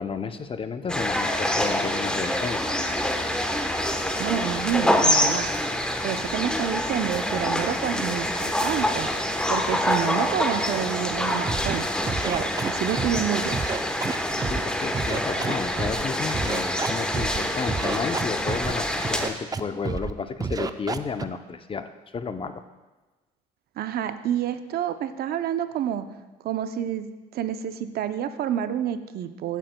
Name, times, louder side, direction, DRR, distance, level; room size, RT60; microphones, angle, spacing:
voice 1, 0.0-2.7 14.4-22.6, left 5 dB, 30° left, 9 dB, 0.6 m, -32 dB
sound 1, 0.9-19.3, left 1 dB, 5° left, 1.0 m, -26 dB
voice 2, 4.2-5.5 6.0-9.1 9.5-11.9 12.2-13.6 23.8-26.0 26.4-27.1 27.3-29.6, right 10 dB, 60° right, 11 dB, 0.6 m, -28 dB
Scratching (performance technique), 11.4-11.8 12.0-13.2 13.5-14.6 14.9-16.0 16.3-17.4 17.7-18.7 19.0-19.6 19.8-20.1 20.4-21.2, right 4 dB, 20° right, 0.5 m, -29 dB
15.0 x 8.9 x 2.2 m, 1.2 s
supercardioid pair, 75°, 18 cm